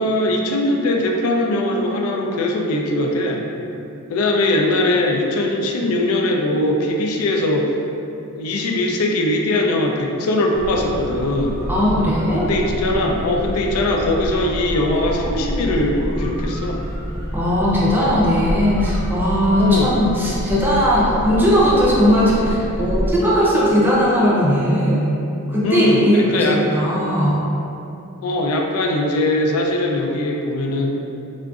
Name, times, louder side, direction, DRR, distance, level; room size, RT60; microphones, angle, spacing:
voice 1, 0.0-3.5 4.1-7.7 8.3-11.6 12.4-16.8 19.6-20.0 25.6-26.7 28.2-31.0, left 1 dB, 85° left, 1 dB, 0.4 m, -20 dB
sound 1, 10.5-23.1, equal, 40° left, 0.9 m, -27 dB
voice 2, 11.7-12.5 17.3-25.1 25.5-27.4, equal, 10° right, -6 dB, 0.5 m, -18 dB
3.6 x 2.5 x 2.3 m, 2.8 s
head